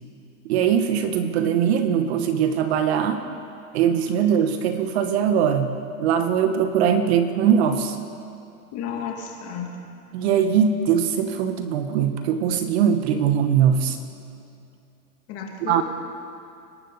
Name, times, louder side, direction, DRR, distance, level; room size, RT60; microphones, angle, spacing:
voice 1, 0.4-3.2 3.7-5.7 6.0-8.0 10.1-14.0 15.6-15.8, right 8 dB, 45° right, 8 dB, 1.1 m, -21 dB
voice 2, 8.7-9.8 15.3-15.8, left 7 dB, 35° left, 1 dB, 2.4 m, -32 dB
25.5 x 12.0 x 4.1 m, 2.7 s
hypercardioid pair, 145°, 45 cm